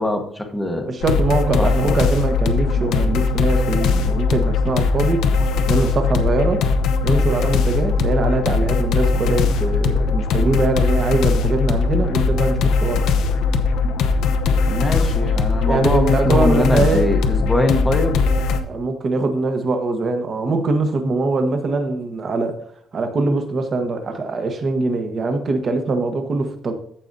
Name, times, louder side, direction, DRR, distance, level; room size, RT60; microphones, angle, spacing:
voice 1, 0.0-0.9 1.6-2.0 14.7-18.2, left 1 dB, 5° left, 1.0 m, -22 dB
voice 2, 0.8-5.2 5.7-6.7 7.0-13.0 15.6-17.1 18.7-22.6 22.9-26.7, right 3 dB, 35° right, 1.3 m, -22 dB
sound 1, 1.0-18.6, left 4 dB, 70° left, 0.8 m, -19 dB
14.5 x 5.0 x 2.7 m
cardioid pair, 155°, 0 cm